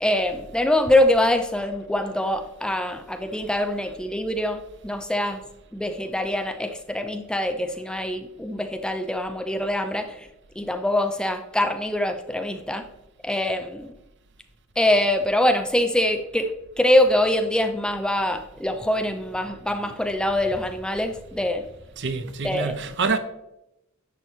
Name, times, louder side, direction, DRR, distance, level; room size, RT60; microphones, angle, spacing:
voice 1, 0.0-5.4 5.7-10.3 10.6-12.9 13.2-13.9 14.8-21.6 22.4-22.8, left 1 dB, 5° left, 0.6 m, -24 dB
voice 2, 22.0-23.2, right 4 dB, 60° right, 0.8 m, -26 dB
10.5 x 7.4 x 3.1 m
head